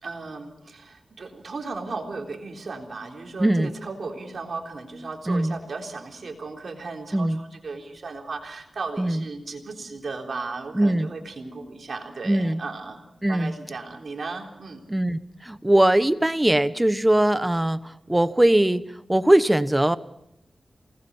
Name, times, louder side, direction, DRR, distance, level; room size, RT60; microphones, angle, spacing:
voice 1, 0.0-13.0 13.3-14.8, right 3 dB, 70° right, 2 dB, 3.7 m, -36 dB
voice 2, 3.4-3.7 5.3-5.6 7.1-7.4 9.0-9.2 10.7-11.1 12.2-12.6 13.2-13.5 14.9-20.0, right 1 dB, 15° right, 13 dB, 1.1 m, -21 dB
27.5 x 19.5 x 5.6 m, 0.81 s
cardioid pair, 60°, 0 cm